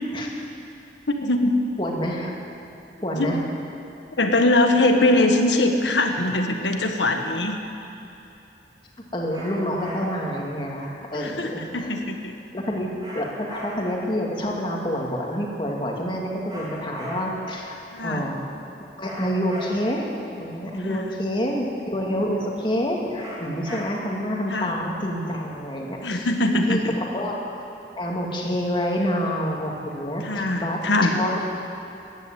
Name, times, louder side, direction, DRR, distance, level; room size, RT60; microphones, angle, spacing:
voice 1, 1.1-1.5 3.2-3.3 4.2-7.6 11.1-12.3 17.9-18.2 20.9-21.0 23.7-23.8 24.5-24.7 26.0-26.9 30.2-31.2, left 2 dB, 85° left, 4 dB, 1.5 m, -22 dB
voice 2, 1.8-2.3 3.0-3.4 9.1-11.9 12.5-17.8 18.0-18.5 19.0-20.1 20.4-26.3 26.7-27.3 28.0-31.4, equal, 25° left, -1 dB, 2.2 m, -27 dB
sound 1, 9.3-10.3 13.0-14.1 16.5-17.5 19.0-20.1 23.2-24.3, equal, 25° right, 3.2 m, -38 dB
15.0 x 10.5 x 9.1 m, 2.9 s
head